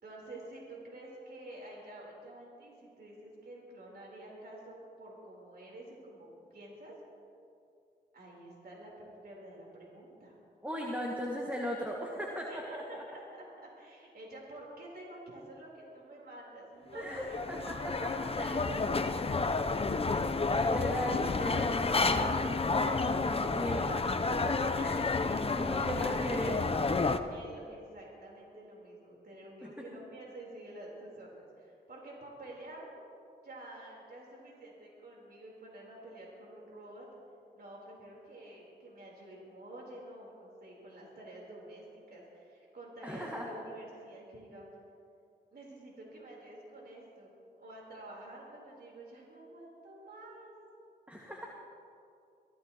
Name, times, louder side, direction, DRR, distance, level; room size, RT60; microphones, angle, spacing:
voice 1, 0.0-6.9 8.1-10.4 12.5-17.7 18.4-20.2 20.5-20.8 25.8-26.8 27.3-32.9 33.4-37.1 37.5-44.6 45.5-47.3 47.6-50.5, right 1 dB, 60° right, -4 dB, 4.2 m, -49 dB
voice 2, 10.6-13.0 16.9-18.5 20.4-25.0 25.5-26.6 29.6-29.7 43.0-43.5 51.1-51.5, equal, 10° right, -2 dB, 2.1 m, -38 dB
sound 1, 16.9-27.2, left 3 dB, 30° left, 0.8 m, -30 dB
23.5 x 15.0 x 3.1 m, 2.5 s
cardioid pair, 55°, 18 cm